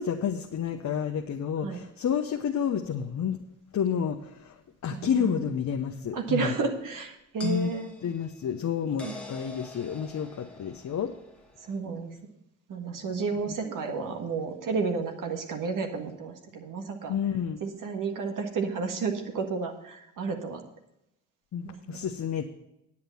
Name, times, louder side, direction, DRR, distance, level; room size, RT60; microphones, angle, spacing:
voice 1, 0.0-3.4 3.7-4.5 4.8-6.5 7.4-7.7 8.0-11.1 17.1-17.6 21.5-22.4, left 8 dB, 50° left, 3 dB, 1.0 m, -30 dB
voice 2, 4.9-5.4 6.1-7.9 9.0-9.2 11.6-12.2 12.7-17.1 17.6-20.6 21.6-22.0, right 4 dB, 60° right, 4 dB, 1.7 m, -32 dB
sound 1, 7.4-11.8, left 3 dB, 5° left, 1.7 m, -46 dB
9.6 x 8.6 x 5.6 m, 0.85 s
hypercardioid pair, 55°, 37 cm